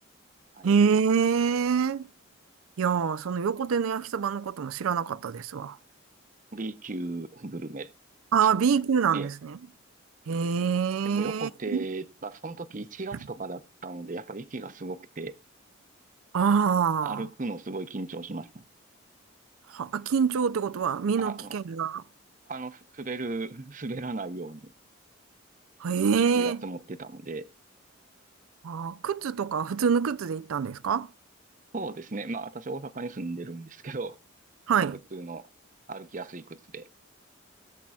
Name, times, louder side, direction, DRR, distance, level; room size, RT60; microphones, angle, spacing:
voice 1, 0.6-2.1 2.8-5.8 8.3-9.6 10.3-11.5 16.3-17.2 19.7-22.0 25.8-26.6 28.6-31.1 34.7-34.9, right 6 dB, 90° right, 0.4 m, -25 dB
voice 2, 6.5-7.9 8.4-8.6 9.1-9.3 11.0-15.4 17.0-18.6 21.1-21.5 22.5-24.7 26.2-27.5 31.7-34.2 34.8-35.5 35.9-36.9, right 3 dB, 40° right, 0.7 m, -36 dB
22.0 x 7.4 x 2.3 m
head